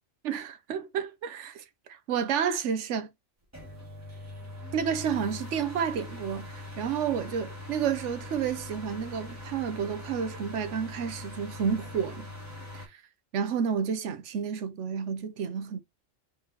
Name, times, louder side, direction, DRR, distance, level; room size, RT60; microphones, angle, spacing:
voice 1, 0.2-1.6 1.9-3.1 4.7-12.3 12.7-12.9 13.3-15.8, right 7 dB, 70° right, 1.0 m, -30 dB
sound 1, 3.5-12.9, left 2 dB, 10° right, 1.7 m, -42 dB
4.7 x 3.4 x 2.8 m
omnidirectional pair, 1.3 m